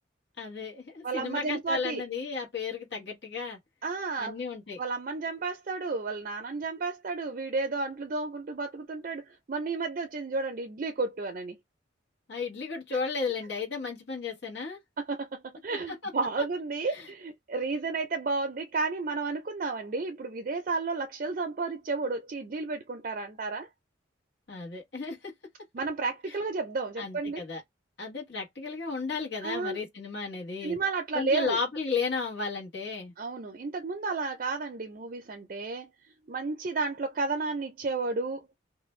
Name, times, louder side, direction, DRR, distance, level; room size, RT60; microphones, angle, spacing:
voice 1, 0.4-3.6 4.2-4.8 12.3-14.8 15.7-15.8 16.0-16.1 16.9-17.0 24.5-25.3 27.0-27.6 28.0-30.8 31.1-33.1, left 4 dB, 60° left, 1.1 m, -34 dB
voice 2, 1.0-2.0 3.8-4.3 4.8-11.6 15.0-23.7 25.7-27.4 29.4-29.8 30.6-31.6 33.2-35.9 36.3-38.5, right 3 dB, 45° right, 0.4 m, -32 dB
2.5 x 2.1 x 3.1 m
head